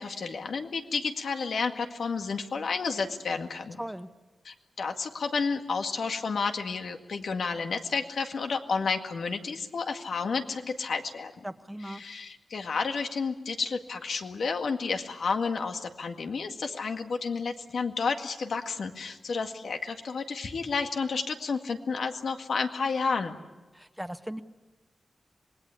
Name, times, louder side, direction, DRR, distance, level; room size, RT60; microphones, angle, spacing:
voice 1, 0.0-3.8 4.4-11.3 11.8-23.4, left 4 dB, 70° left, 5 dB, 1.9 m, -31 dB
voice 2, 3.8-4.1 11.4-12.0 23.7-24.4, equal, 5° right, 11 dB, 0.7 m, -38 dB
26.5 x 20.5 x 8.4 m, 1.2 s
wide cardioid pair, 150°, 0 cm